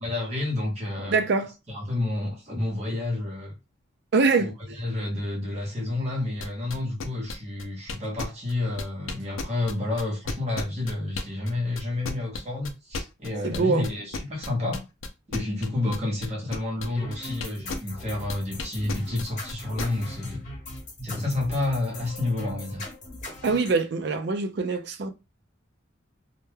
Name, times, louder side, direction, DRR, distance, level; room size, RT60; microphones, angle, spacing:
voice 1, 0.0-1.2 1.7-3.5 4.4-4.5 4.8-14.8 15.3-20.4 21.0-22.9, left 2 dB, 35° right, 0.8 m, -30 dB
voice 2, 1.1-1.5 4.1-4.5 13.4-13.9 23.4-25.1, right 4 dB, 55° right, 0.4 m, -24 dB
sound 1, 6.4-11.5 11.8-18.0 18.3-19.9, left 3 dB, 85° left, 0.4 m, -33 dB
sound 2, 17.0-23.7, left 1 dB, 40° left, 1.0 m, -39 dB
2.2 x 2.2 x 3.1 m
head